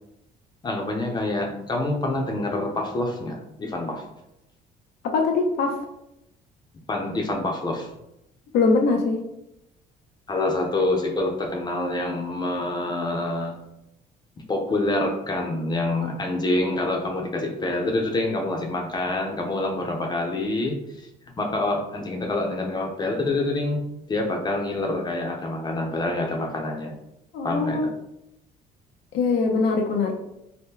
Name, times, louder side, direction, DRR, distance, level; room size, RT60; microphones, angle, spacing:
voice 1, 0.6-4.0 6.9-7.9 10.3-13.6 14.5-21.1 21.4-26.9 27.4-27.9, left 2 dB, 25° left, 1 dB, 0.6 m, -26 dB
voice 2, 5.0-5.8 8.5-9.2 27.3-27.9 29.1-30.1, left 4 dB, 80° left, 2 dB, 0.6 m, -22 dB
2.8 x 2.1 x 3.6 m, 0.84 s
cardioid pair, 110°, 17 cm